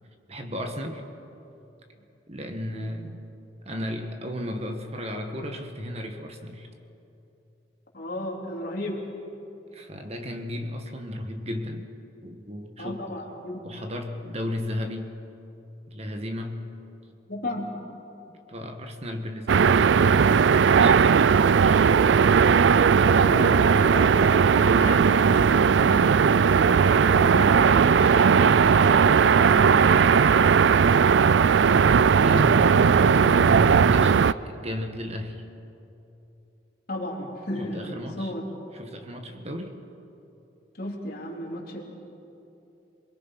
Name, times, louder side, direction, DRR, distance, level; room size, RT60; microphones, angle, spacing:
voice 1, 0.3-1.0 2.3-3.3 3.7-6.7 9.7-11.9 12.2-13.2 13.6-15.1 15.9-16.7 18.5-20.2 20.6-21.9 22.7-23.5 31.4-35.4 37.6-38.3 38.7-39.8, left 1 dB, 35° right, 5 dB, 1.7 m, -34 dB
voice 2, 7.9-9.0 12.8-13.8 17.3-17.8 23.1-26.7 26.9-30.1 36.9-38.4 40.8-41.8, left 1 dB, 55° left, -1 dB, 3.5 m, -34 dB
sound 1, 19.5-34.3, right 6 dB, 75° right, 0.4 m, -18 dB
28.0 x 21.0 x 5.8 m, 2.9 s
head